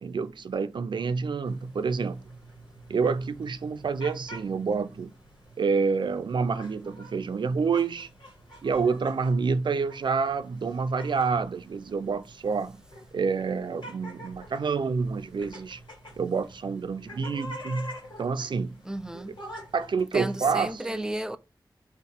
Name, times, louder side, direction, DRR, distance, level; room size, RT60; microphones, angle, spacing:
voice 1, 0.0-2.2 2.9-5.1 5.6-8.1 8.6-12.8 13.1-15.8 16.2-18.8 19.1-19.2 19.7-21.0, right 5 dB, 75° right, 0.4 m, -28 dB
sound 1, 1.4-19.9, equal, 80° left, 1.8 m, -47 dB
voice 2, 18.8-19.4 20.1-21.4, right 1 dB, 10° right, 0.4 m, -32 dB
3.5 x 2.9 x 4.4 m
wide cardioid pair, 75°, 8 cm